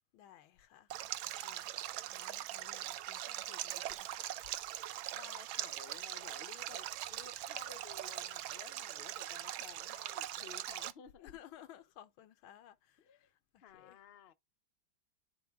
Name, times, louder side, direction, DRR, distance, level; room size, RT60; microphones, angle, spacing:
voice 1, 0.1-0.9 1.4-1.7 2.1-4.5 11.2-13.0 13.5-14.0, left 11 dB, 90° left, 1.7 m, -57 dB
Stream, 0.9-10.9, right 13 dB, 85° right, 1.4 m, -41 dB
voice 2, 5.1-11.4 13.0-13.3 13.6-14.3, left 8 dB, 55° left, 0.6 m, -55 dB
11.5 x 3.9 x 3.5 m
omnidirectional pair, 2.1 m